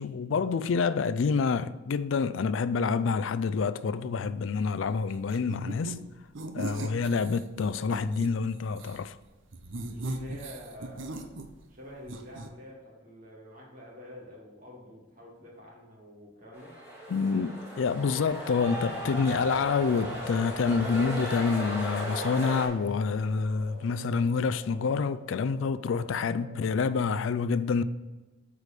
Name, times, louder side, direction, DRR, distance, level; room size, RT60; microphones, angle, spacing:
voice 1, 0.0-6.0 6.5-9.2 17.1-27.8, left 5 dB, 70° left, 0.4 m, -27 dB
sound 1, 5.3-6.0 6.3-8.3 8.7-9.0 9.5-11.8 12.0-12.5, right 2 dB, 65° right, 0.7 m, -38 dB
voice 2, 9.8-11.3 11.7-16.8, left 1 dB, 40° right, 2.4 m, -47 dB
sound 2, 16.5-22.7, equal, 10° right, 2.4 m, -36 dB
sound 3, 18.7-26.5, left 1 dB, 35° left, 1.5 m, -49 dB
8.3 x 4.9 x 5.1 m
head